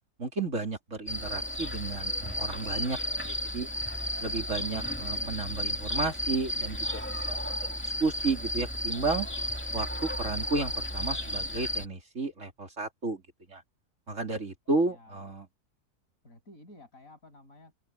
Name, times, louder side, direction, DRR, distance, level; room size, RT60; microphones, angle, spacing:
voice 1, 0.2-3.0 3.3-3.7 4.2-7.6 8.0-9.3 9.7-13.2 13.5-13.6 14.1-15.5, right 3 dB, 50° right, 3.8 m, -32 dB
sound 1, 1.1-11.9, left 1 dB, 5° left, 2.4 m, -33 dB
voice 2, 14.7-15.2 16.2-17.9, left 1 dB, 60° left, 7.8 m, -53 dB
open air
omnidirectional pair, 1.7 m